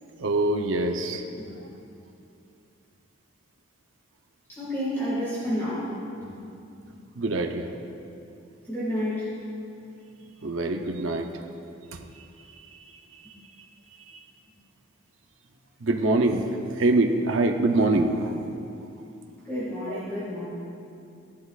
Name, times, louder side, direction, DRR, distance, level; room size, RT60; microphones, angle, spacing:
voice 1, 0.2-1.3 7.2-7.7 10.4-11.3 12.4-12.9 15.8-16.5 16.7-18.4 19.9-20.0, right 2 dB, 70° right, 3 dB, 0.7 m, -24 dB
voice 2, 4.5-6.0 6.2-6.3 8.7-9.3 19.4-20.4, equal, 10° left, -10 dB, 1.9 m, -30 dB
16.0 x 11.5 x 2.4 m, 2.6 s
head